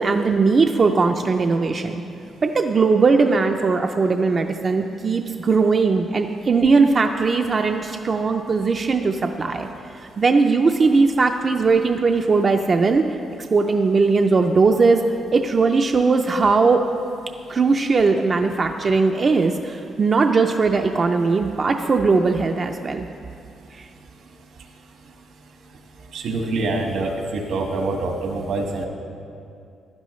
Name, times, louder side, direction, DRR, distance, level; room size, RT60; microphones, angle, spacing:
voice 1, 0.0-2.0 2.4-9.7 10.2-13.0 13.5-15.0 15.3-16.8 17.5-23.1 23.7-23.9, right 4 dB, 30° right, 4 dB, 0.4 m, -19 dB
voice 2, 26.1-28.9, right 2 dB, 75° right, 2 dB, 1.4 m, -25 dB
15.5 x 11.5 x 3.1 m, 2.5 s
cardioid pair, 160°, 0 cm